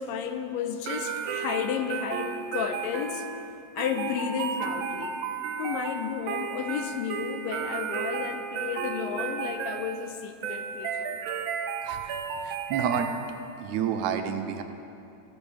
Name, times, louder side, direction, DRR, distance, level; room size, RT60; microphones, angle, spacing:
voice 1, 0.0-3.3 3.8-5.2 5.6-11.2 12.0-12.5, left 7 dB, 80° left, 7 dB, 1.8 m, -33 dB
sound 1, 0.9-13.7, right 6 dB, 75° right, 1.5 m, -33 dB
voice 2, 11.8-12.2 12.4-13.1 13.6-14.6, right 8 dB, 90° right, 7 dB, 2.0 m, -29 dB
14.0 x 13.5 x 3.5 m, 2.6 s
omnidirectional pair, 3.3 m